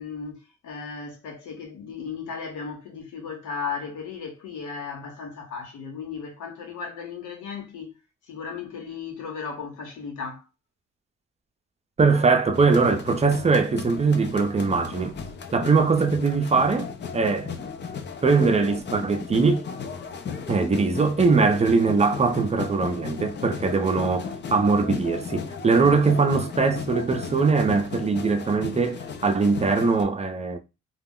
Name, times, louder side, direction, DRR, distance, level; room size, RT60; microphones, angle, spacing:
voice 1, 0.0-8.0 8.3-10.4, left 5 dB, 90° left, 1.0 m, -36 dB
voice 2, 12.0-15.2 15.5-17.5 18.2-19.7 20.5-30.6, right 4 dB, 20° right, 0.5 m, -21 dB
sound 1, 12.5-30.0, left 6 dB, 35° left, 0.4 m, -35 dB
2.3 x 2.0 x 3.7 m
cardioid pair, 90°, 30 cm